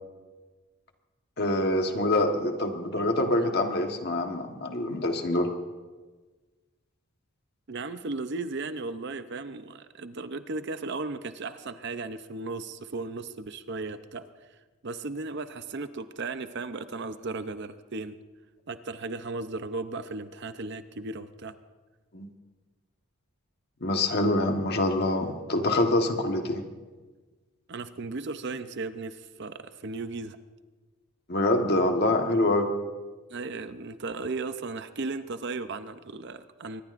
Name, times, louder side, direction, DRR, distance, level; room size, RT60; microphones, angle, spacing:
voice 1, 1.4-5.5 22.1-22.3 23.8-26.6 31.3-32.7, left 1 dB, 45° left, 4 dB, 1.4 m, -25 dB
voice 2, 7.7-14.2 14.8-18.2 18.7-21.5 27.7-30.4 33.3-36.8, right 3 dB, 50° right, 11 dB, 0.6 m, -36 dB
23.5 x 20.5 x 2.6 m, 1.3 s
head